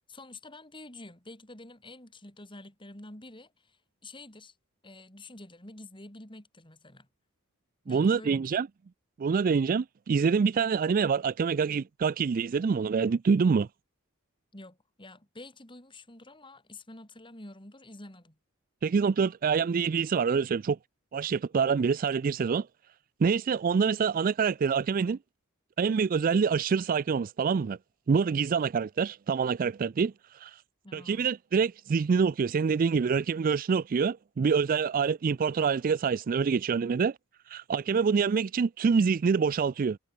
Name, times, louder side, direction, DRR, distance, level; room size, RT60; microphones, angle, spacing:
voice 1, 0.1-4.5 4.8-7.1 7.9-8.4 14.5-18.4 30.8-31.3, left 2 dB, 20° left, 3.8 m, -48 dB
voice 2, 7.9-8.7 9.2-13.7 18.8-20.8 21.1-22.7 23.2-25.2 25.8-27.8 28.1-30.6 30.9-37.2 37.5-40.0, right 5 dB, 40° right, 0.3 m, -26 dB
head